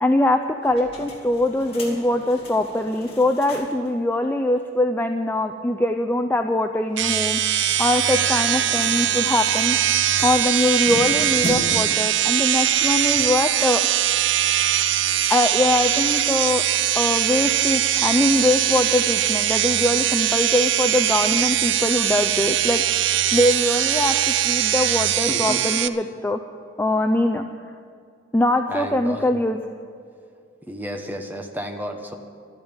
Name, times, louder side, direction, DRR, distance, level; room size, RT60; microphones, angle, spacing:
voice 1, 0.0-7.4 7.8-9.8 10.2-13.8 15.3-16.6 16.9-22.8 23.3-24.1 24.4-26.4 26.8-27.4 28.3-29.6, left 1 dB, 10° left, 5 dB, 0.5 m, -22 dB
sound 1, 0.6-3.9 4.2-4.3 4.6-4.7 7.4-12.0, left 1 dB, 30° left, 2.5 m, -37 dB
sound 2, 7.0-25.9, right 11 dB, 65° right, 0.5 m, -21 dB
voice 2, 25.3-25.6 28.7-29.2 30.6-32.2, equal, 10° right, 4 dB, 1.2 m, -32 dB
12.5 x 10.5 x 8.9 m, 2.3 s
head